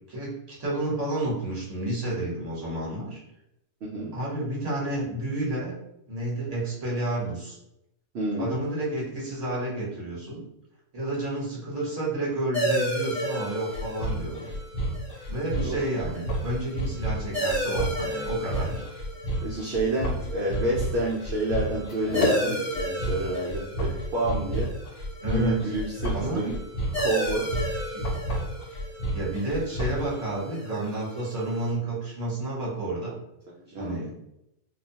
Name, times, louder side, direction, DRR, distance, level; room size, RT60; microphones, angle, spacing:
voice 1, 0.1-3.2 4.1-5.7 6.1-7.5 8.4-10.4 10.9-14.5 15.3-18.8 25.2-25.6 26.1-26.5 29.1-33.2 33.8-34.1, right 1 dB, 30° right, -6 dB, 0.9 m, -30 dB
voice 2, 3.8-4.2 8.1-8.5 15.5-15.8 19.4-24.7 25.2-26.6 27.0-27.5 33.7-34.0, right 1 dB, 65° right, -4 dB, 0.7 m, -29 dB
sound 1, 12.5-31.7, right 1 dB, 5° right, 0.7 m, -34 dB
sound 2, 13.7-30.1, right 1 dB, 70° left, 0.9 m, -30 dB
2.3 x 2.2 x 2.7 m, 0.82 s
omnidirectional pair, 1.5 m